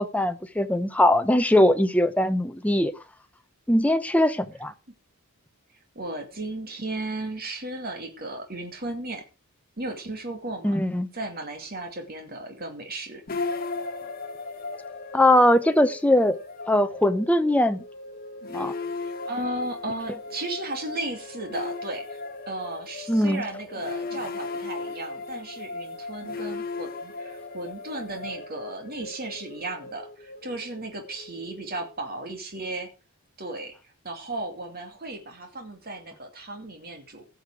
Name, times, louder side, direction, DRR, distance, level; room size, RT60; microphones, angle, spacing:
voice 1, 0.0-2.9 3.7-4.7 10.6-11.1 15.1-16.4 16.6-17.8 18.5-18.7 23.1-23.4, left 1 dB, 5° left, 0.7 m, -21 dB
voice 2, 5.9-9.2 9.8-10.8 11.1-13.2 19.0-32.9 33.4-33.7 34.0-37.3, right 2 dB, 45° right, 2.5 m, -35 dB
sound 1, 13.3-32.4, left 3 dB, 40° left, 1.2 m, -37 dB
16.5 x 6.5 x 4.9 m
head